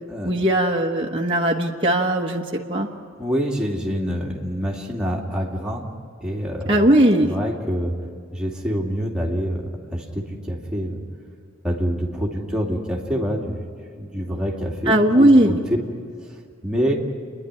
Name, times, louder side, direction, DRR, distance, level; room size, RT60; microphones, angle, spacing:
voice 1, 0.2-2.9 6.7-7.3 14.9-15.6, right 1 dB, 25° right, -2 dB, 1.1 m, -18 dB
voice 2, 3.2-5.9 6.2-7.9 8.3-9.6 9.9-11.0 11.6-13.7 13.9-15.6 16.3-16.9, equal, 5° right, -2 dB, 2.4 m, -26 dB
28.5 x 11.0 x 9.7 m, 2.2 s
head